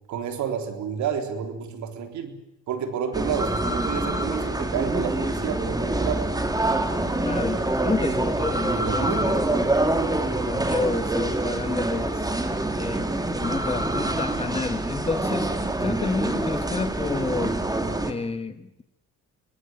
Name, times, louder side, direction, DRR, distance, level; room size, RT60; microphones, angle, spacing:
voice 1, 0.1-2.4 2.7-6.3 8.7-9.7 15.8-15.9, right 7 dB, 75° right, 7 dB, 3.8 m, -30 dB
sound 1, 3.1-18.1, right 2 dB, 15° right, 2.6 m, -26 dB
voice 2, 7.2-9.5 10.4-12.3 12.8-13.2 13.4-17.6 18.0-18.8, left 4 dB, 20° left, 10 dB, 1.5 m, -30 dB
24.0 x 19.5 x 9.2 m, 0.82 s
cardioid pair, 90°, 29 cm